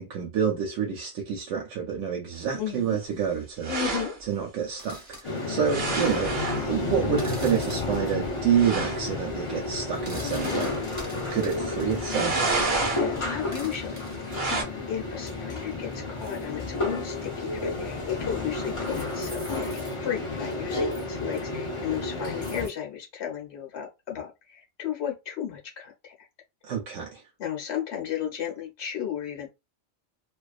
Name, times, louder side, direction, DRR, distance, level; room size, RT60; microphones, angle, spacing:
voice 1, 0.0-3.7 4.3-10.7 11.3-12.5 26.6-27.2, right 7 dB, 85° right, 0.9 m, -28 dB
voice 2, 2.6-3.0 3.7-4.1 10.2-10.5 12.9-19.7 20.0-26.3 27.4-29.5, left 9 dB, 65° left, 1.1 m, -34 dB
sound 1, 3.6-4.2 5.6-6.7 7.9-8.0 8.2-8.3 8.5-9.0 10.3-10.8 12.0-13.1 14.3-14.6, right 3 dB, 60° right, 0.9 m, -29 dB
sound 2, 4.8-5.2 7.2-8.0 9.9-12.0 13.4-14.4 15.6-16.8 17.8-17.9 18.8-19.9 20.5-20.6 20.9-21.0 21.3-21.4 22.4-22.7, right 1 dB, 20° right, 0.7 m, -45 dB
sound 3, 5.2-22.7, left 2 dB, 40° left, 0.4 m, -31 dB
2.4 x 2.2 x 2.4 m
omnidirectional pair, 1.2 m